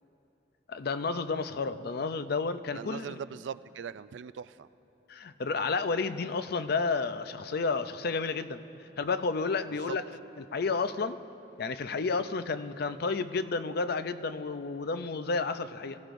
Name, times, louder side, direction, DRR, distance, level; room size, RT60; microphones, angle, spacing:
voice 1, 0.7-3.2 5.1-8.6 9.0-10.0 10.4-11.2 11.6-16.0, left 4 dB, 60° left, 11 dB, 0.5 m, -31 dB
voice 2, 2.7-4.7 9.9-10.0, right 7 dB, 80° right, 16 dB, 0.3 m, -40 dB
24.5 x 16.0 x 2.6 m, 2.9 s
head